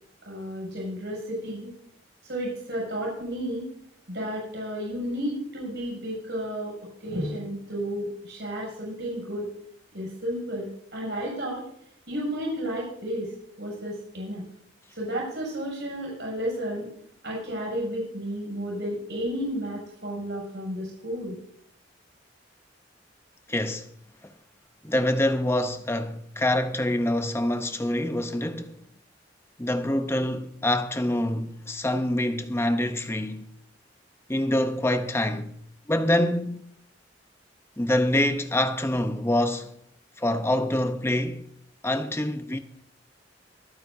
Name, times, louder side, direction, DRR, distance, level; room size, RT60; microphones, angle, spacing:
voice 1, 0.2-1.7 2.2-3.7 4.1-9.5 9.9-11.7 12.1-14.4 14.9-16.9 17.2-21.4, equal, 65° right, 6.3 m, -32 dB
voice 2, 23.5-23.8 24.8-28.7 29.6-33.5 34.3-35.6 35.9-36.7 37.8-39.7 40.2-41.5 41.8-42.6, left 1 dB, 15° left, 0.8 m, -25 dB
24.5 x 9.5 x 2.7 m
head